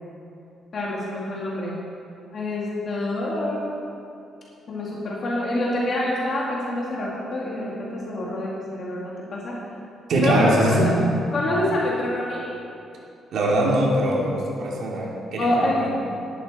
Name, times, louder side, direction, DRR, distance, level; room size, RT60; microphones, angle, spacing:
voice 1, 0.7-1.8 2.3-3.7 4.7-9.6 10.2-11.0 11.3-12.5 15.4-15.9, left 1 dB, 45° left, -5 dB, 2.4 m, -26 dB
voice 2, 10.1-11.0 13.3-15.9, right 1 dB, 60° right, -3 dB, 3.0 m, -22 dB
18.0 x 12.0 x 4.4 m, 2.6 s
cardioid pair, 140°, 0 cm